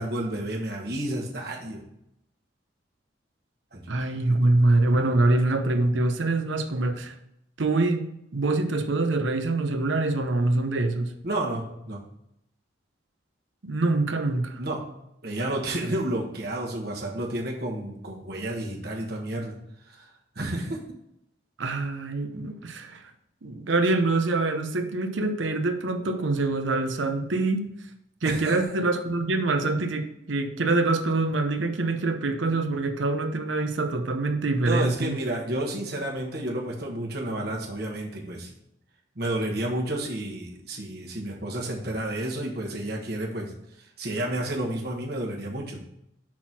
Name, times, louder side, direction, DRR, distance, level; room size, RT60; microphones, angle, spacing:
voice 1, 0.0-1.8 3.7-3.9 4.3-4.5 11.2-12.0 14.6-14.8 15.2-19.5 19.9-20.8 28.2-28.6 34.6-38.5 39.1-45.8, right 1 dB, 55° right, -1 dB, 1.3 m, -31 dB
voice 2, 3.9-7.2 7.6-11.1 13.6-14.6 21.6-23.0 23.4-27.7 28.2-35.2, right 2 dB, 80° right, 7 dB, 0.8 m, -25 dB
5.9 x 4.1 x 6.0 m, 0.78 s
head